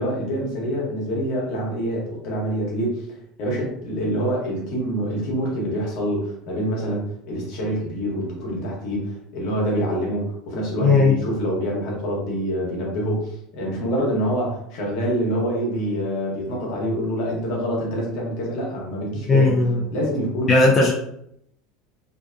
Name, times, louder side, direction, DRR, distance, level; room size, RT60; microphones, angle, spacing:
voice 1, 0.0-3.1 3.4-19.5 19.9-20.6, equal, 65° left, -3 dB, 1.1 m, -26 dB
voice 2, 10.8-11.1 19.3-19.8 20.5-20.9, left 3 dB, 25° left, -3 dB, 0.5 m, -16 dB
2.6 x 2.2 x 2.5 m, 0.73 s
hypercardioid pair, 95°, 0 cm